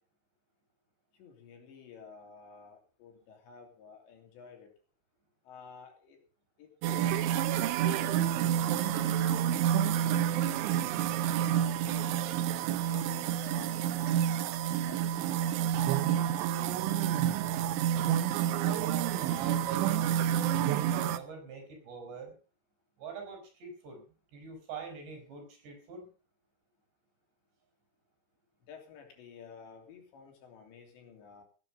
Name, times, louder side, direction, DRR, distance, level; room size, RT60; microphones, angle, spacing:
voice 1, 1.1-4.7 5.5-6.2 6.6-7.3 7.7-10.7 11.4-12.3 12.8-14.2 14.5-16.2 16.5-17.1 28.6-31.4, left 6 dB, 70° left, 3 dB, 5.2 m, -52 dB
sound 1, 6.8-21.2, right 10 dB, 85° right, 3.3 m, -29 dB
voice 2, 18.6-22.3 23.0-24.0 24.3-26.1, right 5 dB, 65° right, 4 dB, 6.5 m, -44 dB
17.5 x 9.6 x 5.2 m, 0.37 s
omnidirectional pair, 5.3 m